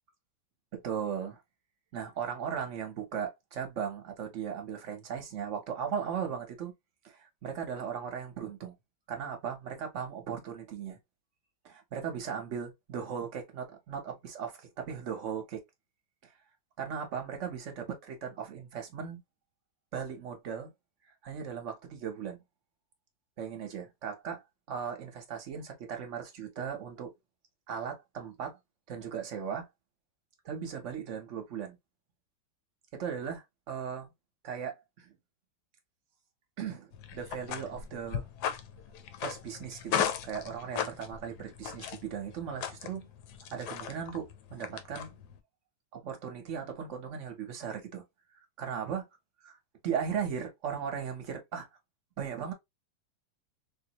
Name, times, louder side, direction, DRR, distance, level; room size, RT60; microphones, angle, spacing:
voice 1, 0.7-1.4 1.9-6.7 7.0-8.7 9.1-11.0 11.6-15.6 16.8-19.2 19.9-20.7 21.2-22.4 23.4-24.4 24.7-27.1 27.7-28.6 28.9-29.7 30.4-31.8 32.9-34.1 34.4-35.2 36.6-38.3 39.2-43.1 43.5-45.2 45.9-48.0 48.6-49.1 49.4-49.6 49.8-51.7 52.2-52.5, right 7 dB, 50° right, 1.0 m, -37 dB
sound 1, 36.9-45.4, left 9 dB, 70° left, 1.1 m, -37 dB
3.5 x 2.7 x 2.9 m
omnidirectional pair, 2.0 m